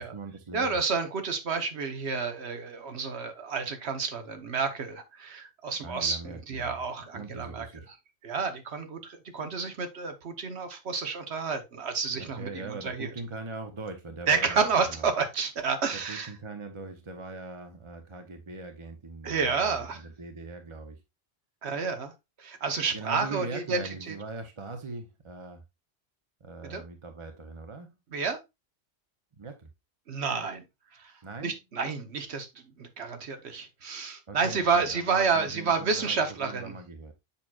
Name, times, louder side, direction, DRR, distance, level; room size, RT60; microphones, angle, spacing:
voice 1, 0.0-0.8 5.8-6.8 7.1-7.9 12.1-15.1 15.9-21.0 22.9-25.6 26.4-27.9 29.4-29.7 31.2-31.5 34.3-37.1, right 3 dB, 30° right, 0.7 m, -41 dB
voice 2, 0.5-7.7 8.2-13.1 14.3-16.3 19.2-20.0 21.6-22.1 22.4-24.1 26.6-26.8 28.1-28.4 30.1-30.6 30.9-31.1 31.4-32.5 32.8-36.7, right 5 dB, 65° right, 1.3 m, -30 dB
7.1 x 6.0 x 2.4 m
omnidirectional pair, 1.2 m